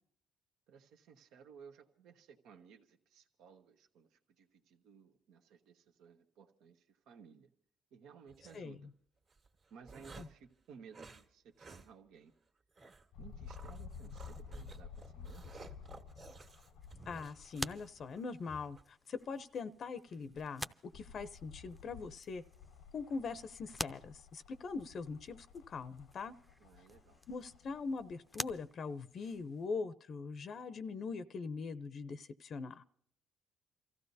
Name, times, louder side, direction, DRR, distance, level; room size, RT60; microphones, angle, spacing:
voice 1, 0.7-7.5 7.9-8.9 9.7-12.3 13.2-15.5 26.6-27.2, right 6 dB, 80° right, 1.1 m, -58 dB
sound 1, 8.3-8.6 9.3-10.4 10.9-11.3 11.6-11.9 12.2-12.3 12.8-13.1 13.5-18.8, right 3 dB, 50° right, 1.8 m, -54 dB
sound 2, 13.1-18.2 18.6-18.7 20.1-28.6 29.4-29.5, left 6 dB, 85° left, 0.8 m, -53 dB
sound 3, 16.8-29.7, equal, ahead, 0.6 m, -49 dB
voice 2, 17.1-20.7 20.9-22.4 22.9-26.3 27.3-32.8, left 4 dB, 55° left, 0.6 m, -42 dB
29.0 x 14.5 x 2.7 m
cardioid pair, 85°, 0 cm